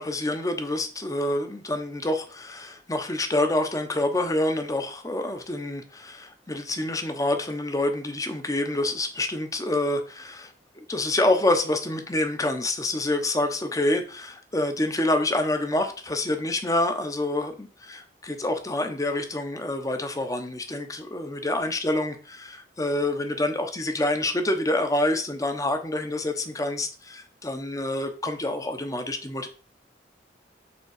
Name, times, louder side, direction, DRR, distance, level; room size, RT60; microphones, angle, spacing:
voice 1, 0.0-29.5, left 1 dB, 20° left, 6 dB, 0.9 m, -27 dB
7.1 x 3.8 x 6.5 m, 0.38 s
head